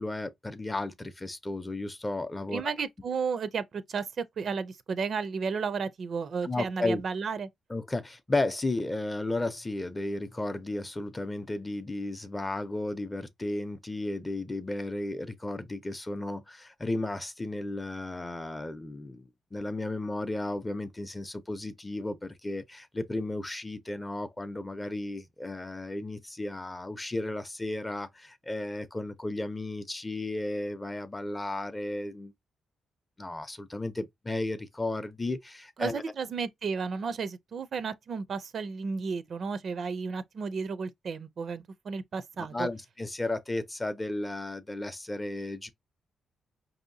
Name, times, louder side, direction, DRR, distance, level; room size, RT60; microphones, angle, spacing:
voice 1, 0.0-2.7 6.4-7.0 7.7-32.3 33.2-36.0 42.4-45.7, left 2 dB, 15° left, 0.6 m, -34 dB
voice 2, 2.5-7.5 35.8-42.7, right 5 dB, 55° right, 0.5 m, -33 dB
5.1 x 2.7 x 2.6 m
cardioid pair, 105°, 0 cm